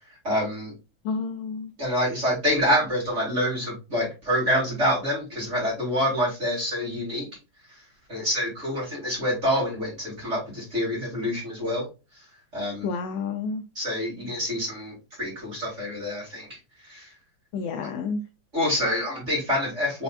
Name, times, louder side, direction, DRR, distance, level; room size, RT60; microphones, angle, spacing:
voice 1, 0.2-0.7 1.8-7.3 8.1-11.9 12.5-12.9 13.8-17.1 18.5-20.0, equal, 25° right, 2.2 m, -27 dB
voice 2, 1.0-1.7 12.8-13.6 17.5-18.2, left 4 dB, 80° left, 1.4 m, -30 dB
4.9 x 3.5 x 2.2 m
omnidirectional pair, 3.3 m